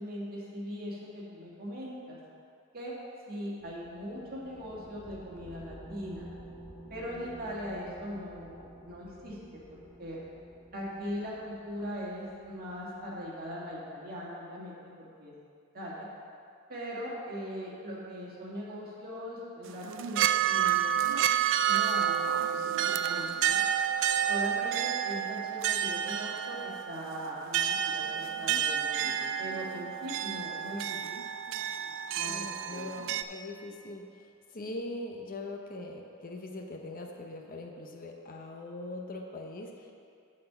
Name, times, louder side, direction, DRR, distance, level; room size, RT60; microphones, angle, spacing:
voice 1, 0.0-2.2 2.7-2.9 3.3-6.3 6.9-10.2 10.7-15.3 15.7-16.1 16.7-21.2 21.6-22.6 22.8-23.6 24.3-31.0 32.1-32.3 32.6-32.9, equal, 45° right, -5 dB, 1.9 m, -40 dB
sound 1, 3.6-13.6, right 1 dB, 15° right, 1.0 m, -51 dB
sound 2, 19.7-33.2, right 9 dB, 60° right, 0.3 m, -30 dB
voice 2, 32.3-39.9, left 2 dB, 40° left, 2 dB, 0.7 m, -41 dB
9.6 x 4.3 x 6.8 m, 2.4 s
head